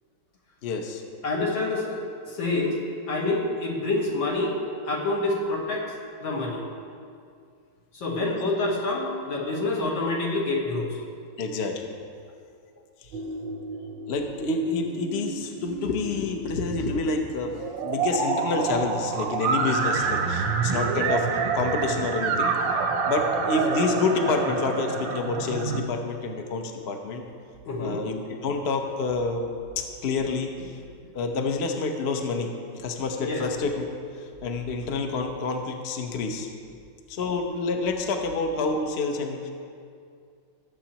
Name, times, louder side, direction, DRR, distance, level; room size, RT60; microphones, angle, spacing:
voice 1, 0.6-1.0 11.4-11.9 13.0-13.1 14.1-21.3 21.5-22.5 23.1-27.2 27.8-29.5 29.8-30.8 31.1-32.5 32.8-33.8 34.2-36.5 37.1-39.5, left 3 dB, 50° left, 3 dB, 0.8 m, -28 dB
voice 2, 1.2-1.9 2.2-2.8 3.1-4.6 4.9-5.9 6.2-6.6 7.9-11.0 27.6-28.0 33.2-33.4, left 2 dB, 75° left, -3 dB, 2.4 m, -27 dB
sound 1, 13.1-25.8, right 5 dB, 80° right, 1.5 m, -28 dB
19.5 x 7.5 x 2.9 m, 2.3 s
omnidirectional pair, 2.1 m